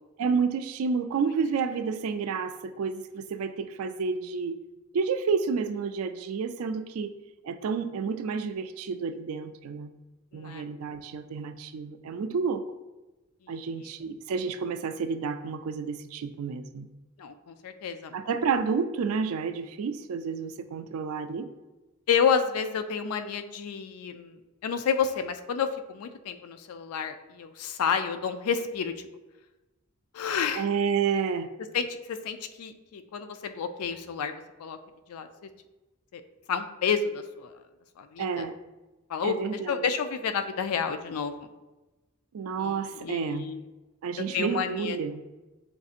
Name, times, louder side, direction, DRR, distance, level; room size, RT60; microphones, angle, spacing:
voice 1, 0.2-4.6 4.9-7.1 7.4-9.9 10.3-12.6 13.5-16.9 18.1-21.5 30.5-31.5 38.2-38.5 39.2-39.9 42.3-43.5 44.0-45.2, right 5 dB, 70° right, 11 dB, 0.3 m, -30 dB
voice 2, 10.3-10.6 13.5-13.6 17.2-18.2 22.1-29.1 30.1-30.7 31.7-34.8 35.1-35.3 36.1-36.2 36.5-37.5 38.0-38.4 39.1-41.5 42.6-43.6 44.3-45.0, left 6 dB, 85° left, 8 dB, 0.4 m, -30 dB
7.1 x 2.6 x 2.4 m, 1.1 s
head